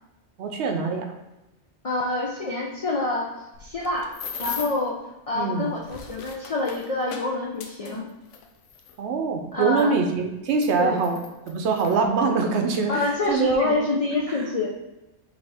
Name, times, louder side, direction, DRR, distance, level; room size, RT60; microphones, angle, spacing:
voice 1, 0.4-1.0 5.4-5.7 9.0-11.2 11.5-13.7, right 4 dB, 70° right, 4 dB, 0.9 m, -24 dB
voice 2, 1.8-3.3 3.6-4.1 4.4-5.0 5.3-8.1 9.5-10.0 10.8-11.1 12.9-14.7, left 2 dB, 55° left, -3 dB, 0.4 m, -26 dB
sound 1, 3.5-4.9 5.6-9.0 9.8-9.9 10.5-12.0 12.7-12.9 13.2-13.6, left 6 dB, 80° left, 0.9 m, -39 dB
5.4 x 2.9 x 3.4 m, 0.95 s
omnidirectional pair, 1.2 m